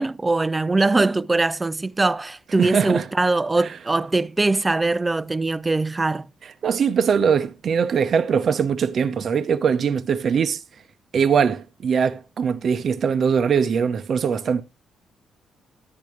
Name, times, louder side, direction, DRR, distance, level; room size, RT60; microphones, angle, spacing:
voice 1, 0.0-6.3, right 2 dB, 20° right, 0.5 m, -22 dB
voice 2, 2.6-3.1 6.4-10.6 11.1-14.6, right 6 dB, 55° right, 0.8 m, -21 dB
10.5 x 9.7 x 3.2 m
cardioid pair, 90°, 0 cm